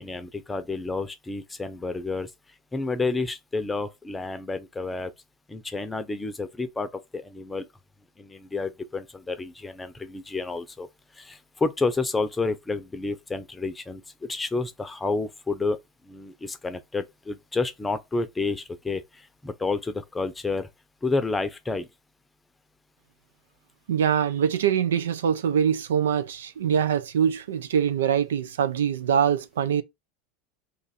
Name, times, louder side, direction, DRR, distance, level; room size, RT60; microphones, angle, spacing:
voice 1, 0.0-2.3 2.7-5.1 5.5-7.7 8.2-10.9 11.1-15.8 16.0-20.7 21.0-21.9, left 3 dB, 15° left, 0.6 m, -30 dB
voice 2, 23.9-29.8, right 8 dB, 90° right, 0.5 m, -23 dB
2.6 x 2.5 x 4.1 m
hypercardioid pair, 100°, 0 cm